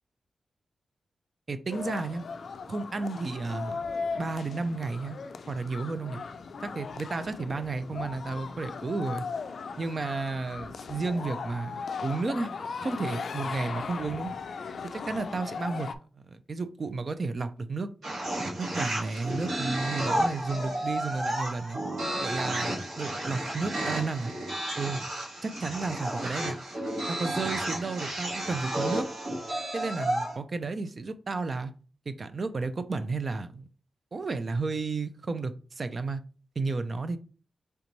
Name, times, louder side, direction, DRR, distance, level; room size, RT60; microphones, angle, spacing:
voice 1, 1.5-2.2 2.7-3.8 4.2-5.2 5.5-6.2 6.6-9.2 9.8-12.5 12.8-14.3 14.9-15.9 16.1-17.9 18.6-21.8 22.2-24.3 24.8-25.0 25.4-26.6 27.1-29.1 29.7-31.7 32.1-33.7 34.1-36.2 36.6-37.2, right 3 dB, 40° right, 0.4 m, -32 dB
sound 1, 1.7-15.9, left 5 dB, 60° left, 0.3 m, -38 dB
sound 2, 18.0-30.3, right 1 dB, 75° right, 1.8 m, -32 dB
3.3 x 3.0 x 3.9 m
wide cardioid pair, 155°, 0 cm